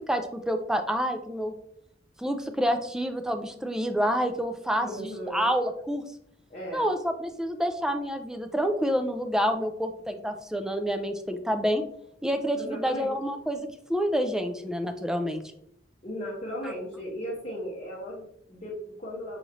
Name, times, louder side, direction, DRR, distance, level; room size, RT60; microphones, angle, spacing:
voice 1, 0.1-1.6 2.2-4.9 5.3-6.0 6.7-11.8 12.2-15.4 16.6-16.7, equal, 5° right, 6 dB, 0.3 m, -28 dB
voice 2, 4.8-5.5 6.5-6.9 12.6-13.1 16.0-19.4, equal, 40° left, -5 dB, 0.9 m, -36 dB
4.9 x 2.9 x 2.7 m, 0.70 s
head